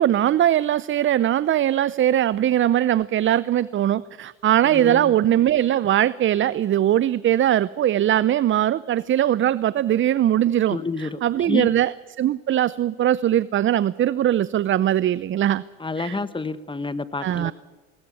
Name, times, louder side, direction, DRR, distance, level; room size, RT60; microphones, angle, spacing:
voice 1, 0.0-15.6 16.0-16.2 17.2-17.5, right 11 dB, 30° right, 19 dB, 0.6 m, -21 dB
voice 2, 4.7-5.2 10.7-11.2 11.5-11.7 15.8-17.5, left 3 dB, 15° left, 14 dB, 1.5 m, -29 dB
21.0 x 18.5 x 9.6 m, 1.3 s
supercardioid pair, 90°, 38 cm